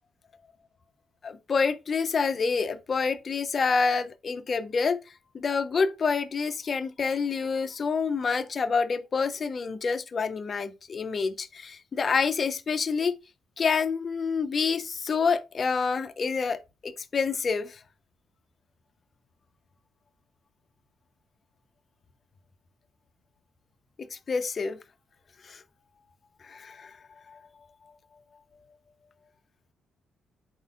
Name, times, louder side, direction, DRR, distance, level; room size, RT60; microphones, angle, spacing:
voice 1, 1.2-5.0 5.3-13.2 13.6-17.7 24.1-24.8 25.5-25.6 26.4-26.9 27.3-27.4, left 5 dB, 40° left, 0.5 m, -27 dB
4.3 x 4.0 x 2.5 m
cardioid pair, 90°, 0 cm